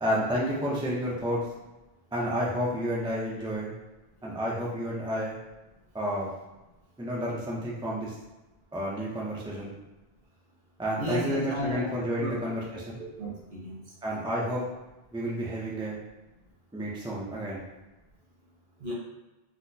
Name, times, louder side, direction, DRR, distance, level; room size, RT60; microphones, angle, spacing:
voice 1, 0.0-1.4 2.1-3.7 4.2-5.4 5.9-6.3 7.0-8.1 8.7-9.7 10.8-13.0 14.0-14.6 15.1-16.0 16.7-17.6, equal, 10° right, -5 dB, 0.3 m, -30 dB
voice 2, 11.0-11.8 12.2-12.4 12.7-13.8 18.8-18.9, equal, 55° right, -5 dB, 1.1 m, -34 dB
4.1 x 2.0 x 2.6 m, 1.1 s
omnidirectional pair, 1.0 m